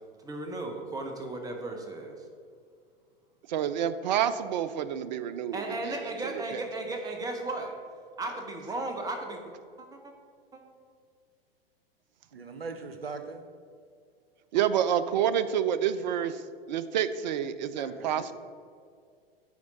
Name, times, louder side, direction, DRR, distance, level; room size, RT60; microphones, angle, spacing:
voice 1, 0.2-2.1 5.5-7.7 8.2-10.1 10.5-10.6 14.5-14.6 17.8-17.9, right 2 dB, 10° right, 3 dB, 0.8 m, -36 dB
voice 2, 3.5-6.6 14.5-18.3, right 9 dB, 50° right, 13 dB, 0.5 m, -29 dB
voice 3, 12.3-13.4 18.0-18.3, right 4 dB, 75° right, 7 dB, 0.8 m, -40 dB
9.3 x 4.3 x 4.2 m, 2.2 s
figure-of-eight pair, 95°, 30 cm